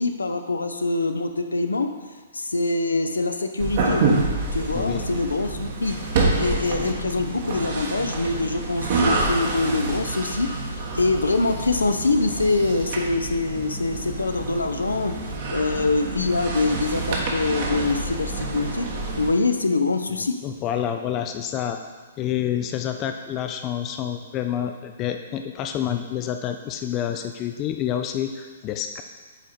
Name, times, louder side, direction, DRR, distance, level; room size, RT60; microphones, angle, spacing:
voice 1, 0.0-1.9 2.3-4.1 4.5-6.0 6.3-10.5 10.9-15.2 15.5-18.9 19.2-20.4, left 3 dB, 75° left, 7 dB, 0.6 m, -24 dB
sound 1, 3.6-19.3, right 3 dB, 45° right, 1.2 m, -27 dB
voice 2, 4.7-5.1 20.4-21.8 22.2-29.0, left 10 dB, 25° left, 6 dB, 0.4 m, -28 dB
8.0 x 4.9 x 4.2 m, 1.4 s
figure-of-eight pair, 115°, 0 cm